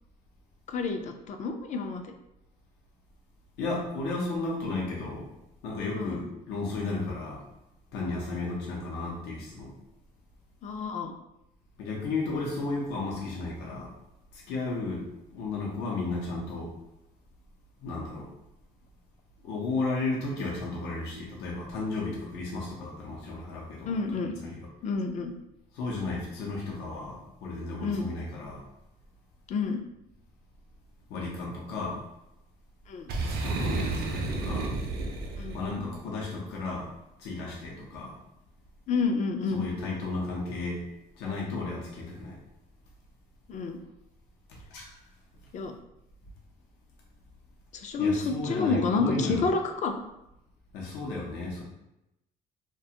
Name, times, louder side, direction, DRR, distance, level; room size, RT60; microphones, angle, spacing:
voice 1, 0.7-2.1 5.9-6.3 10.6-11.1 23.9-24.5 24.8-25.3 27.8-28.1 29.5-29.8 32.9-33.1 35.4-35.9 38.9-39.7 43.5-43.8 45.5-45.7 47.7-50.0, left 4 dB, 45° left, 6 dB, 0.4 m, -29 dB
voice 2, 3.6-5.3 5.6-7.4 7.9-9.7 11.8-13.9 14.3-15.0 15.3-16.7 17.8-18.3 19.4-23.9 24.4-24.7 25.7-28.6 31.1-32.0 33.4-34.7 35.5-36.9 37.2-38.1 39.5-40.8 41.2-42.4 44.5-44.9 48.0-49.4 50.7-51.6, left 3 dB, 90° left, -3 dB, 0.6 m, -33 dB
Boom, 33.1-35.8, right 3 dB, 70° right, 0.5 m, -31 dB
2.4 x 2.2 x 2.7 m, 0.88 s
cardioid pair, 110°, 17 cm